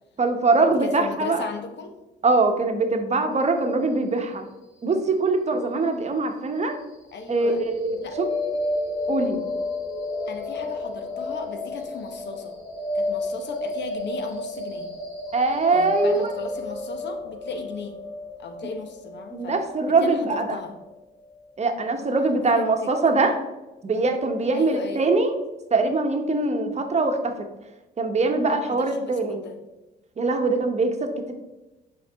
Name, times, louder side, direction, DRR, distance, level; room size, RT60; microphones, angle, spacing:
voice 1, 0.2-1.5 2.2-4.5 4.8-6.7 7.3-8.3 9.1-9.4 15.3-16.2 19.3-20.6 21.6-23.3 23.8-25.4 25.7-27.3 28.0-29.4 30.2-31.3, right 3 dB, 35° right, 5 dB, 1.0 m, -22 dB
voice 2, 0.7-1.9 5.5-6.1 7.1-7.6 8.0-8.2 10.3-12.6 12.9-14.9 15.7-18.0 18.4-19.6 19.9-20.7 22.0-22.9 24.5-25.1 28.4-29.6, left 4 dB, 60° left, 6 dB, 1.0 m, -37 dB
sound 1, 7.3-21.3, left 2 dB, 20° left, 2.1 m, -31 dB
7.0 x 4.7 x 3.5 m, 1.0 s
cardioid pair, 90°, 20 cm